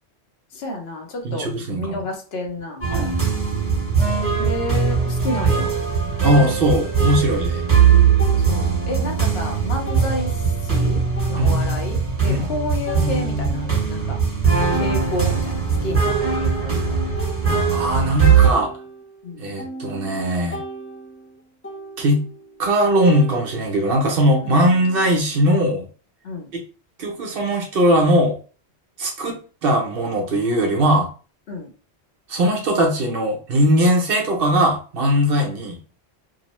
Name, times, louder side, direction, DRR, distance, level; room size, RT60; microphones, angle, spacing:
voice 1, 0.5-1.5 1.8-2.8 4.4-5.7 8.3-10.3 10.6-11.0 11.3-14.2 14.7-16.9 19.2-19.5 24.4-24.6 26.2-26.5 31.5-31.7, left 1 dB, 70° left, 2 dB, 0.9 m, -30 dB
voice 2, 1.2-2.0 2.9-3.2 6.2-7.6 11.4-11.6 12.3-12.5 17.7-18.7 19.4-20.6 22.0-22.3 22.6-25.9 26.5-26.6 27.0-28.4 29.0-31.1 32.3-35.8, equal, 60° right, 1 dB, 0.9 m, -19 dB
sound 1, 2.8-18.5, right 6 dB, 15° right, 1.0 m, -20 dB
sound 2, 6.3-6.5 8.2-8.6 9.2-9.3 9.9-10.1 11.2-11.8 12.9-13.7 14.2-14.3 14.6-15.4 15.8-18.0 18.4-22.8 23.1-25.4, right 2 dB, 20° left, 0.4 m, -37 dB
2.9 x 2.0 x 2.9 m, 0.37 s
omnidirectional pair, 1.1 m